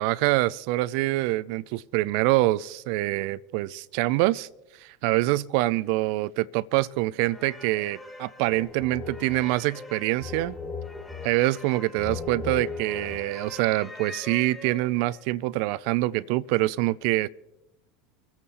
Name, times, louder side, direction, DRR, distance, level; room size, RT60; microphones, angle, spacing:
voice 1, 0.0-4.5 4.8-10.6 11.2-17.3, right 18 dB, 55° right, 0.4 m, -25 dB
sound 1, 7.3-15.1, left 4 dB, 10° left, 2.0 m, -39 dB
24.5 x 8.7 x 4.2 m
figure-of-eight pair, 80°, 0 cm